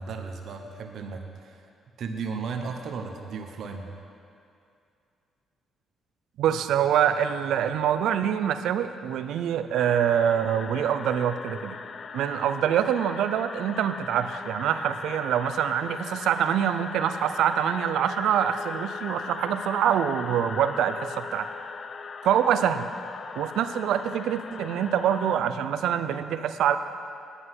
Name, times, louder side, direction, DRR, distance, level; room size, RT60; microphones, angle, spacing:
voice 1, 0.0-1.7 2.0-3.9, right 5 dB, 65° right, 3 dB, 0.9 m, -35 dB
voice 2, 6.4-11.8 12.1-21.5 22.2-22.9 23.4-26.8, right 9 dB, 80° right, 10 dB, 0.5 m, -25 dB
sound 1, 9.7-25.4, left 5 dB, 50° left, 0.3 m, -39 dB
9.7 x 7.9 x 6.1 m, 2.5 s
cardioid pair, 90°, 0 cm